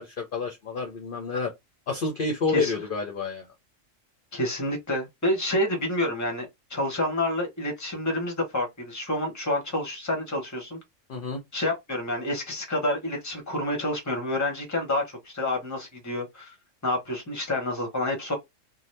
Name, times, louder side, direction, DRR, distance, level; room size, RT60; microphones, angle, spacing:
voice 1, 0.0-1.5 1.9-3.5 11.1-11.4, left 4 dB, 55° left, 0.7 m, -29 dB
voice 2, 4.3-10.8 11.5-16.5 16.8-18.3, left 1 dB, 15° left, 0.8 m, -28 dB
2.7 x 2.1 x 3.2 m
omnidirectional pair, 1.3 m